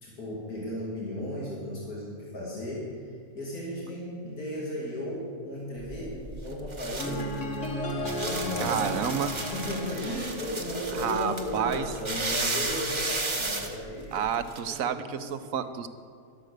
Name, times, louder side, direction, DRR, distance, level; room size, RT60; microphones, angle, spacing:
voice 1, 0.0-7.4 8.2-9.0 9.5-14.3 14.7-15.3, left 1 dB, 85° left, -5 dB, 3.0 m, -35 dB
sound 1, 5.8-14.6, right 2 dB, 20° right, 1.0 m, -34 dB
sound 2, 7.0-11.1, left 1 dB, 55° left, 1.8 m, -34 dB
voice 2, 8.6-9.3 11.0-11.8 14.1-15.9, right 8 dB, 70° right, 11 dB, 1.2 m, -30 dB
13.0 x 11.5 x 6.6 m, 2.2 s
omnidirectional pair, 1.5 m